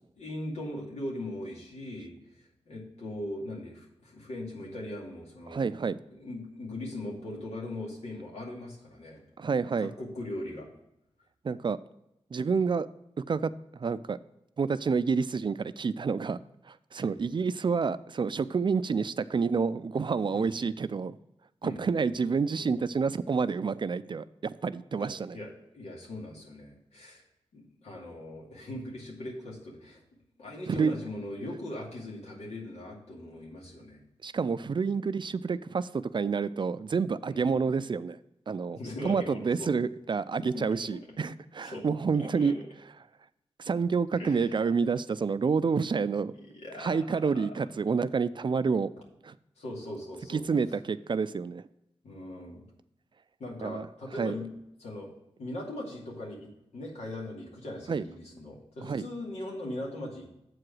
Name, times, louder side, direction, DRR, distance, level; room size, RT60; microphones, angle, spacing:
voice 1, 0.2-5.7 6.1-9.2 9.8-10.7 17.1-17.3 20.3-20.5 21.6-21.9 25.0-27.2 27.5-30.0 30.4-34.0 37.3-37.6 38.7-39.7 40.4-41.0 41.6-41.8 42.1-42.6 44.2-44.5 46.3-47.0 47.3-47.7 49.6-50.4 52.0-52.6 53.4-54.4 54.8-55.1 55.4-60.4, left 1 dB, 90° left, -3 dB, 2.3 m, -40 dB
voice 2, 5.5-6.0 9.4-9.9 11.4-11.8 12.3-12.9 13.3-14.2 14.6-16.4 16.7-21.2 21.6-25.4 30.7-30.9 34.2-38.2 38.5-42.5 43.6-46.3 46.8-48.9 49.2-49.4 50.3-51.6 53.6-53.9 54.2-54.4 57.9-58.0 58.8-59.1, right 5 dB, 45° right, 15 dB, 0.4 m, -28 dB
7.7 x 4.8 x 6.1 m, 0.84 s
cardioid pair, 65°, 11 cm